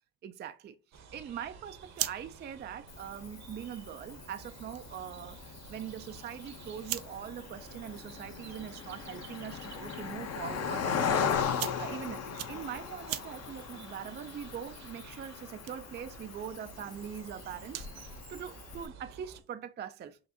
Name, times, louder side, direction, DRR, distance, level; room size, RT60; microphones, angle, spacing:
voice 1, 0.2-20.2, right 8 dB, 30° right, 0.4 m, -42 dB
sound 1, 0.9-19.4, right 5 dB, 50° right, 0.9 m, -52 dB
sound 2, 1.6-18.1, right 14 dB, 75° right, 0.6 m, -46 dB
Cricket, 2.9-18.9, left 7 dB, 45° left, 0.8 m, -38 dB
6.2 x 2.5 x 2.8 m
supercardioid pair, 70°, 36 cm